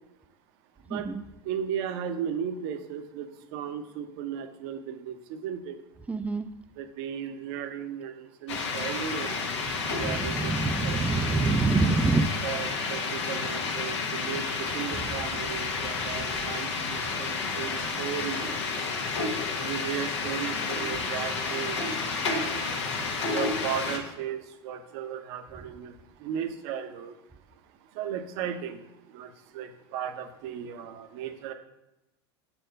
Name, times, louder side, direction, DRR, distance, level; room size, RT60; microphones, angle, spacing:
voice 1, 1.4-5.8 6.7-9.5 9.8-10.5 10.8-11.6 12.4-18.9 19.6-22.8 23.3-27.2 27.8-28.8 29.0-31.5, right 8 dB, 60° right, 8 dB, 0.9 m, -36 dB
voice 2, 6.1-6.5 10.0-12.3, right 3 dB, 10° right, 10 dB, 0.4 m, -26 dB
sound 1, 8.5-24.0, left 4 dB, 85° left, 1.3 m, -31 dB
6.6 x 4.4 x 5.2 m, 0.90 s
hypercardioid pair, 105°, 14 cm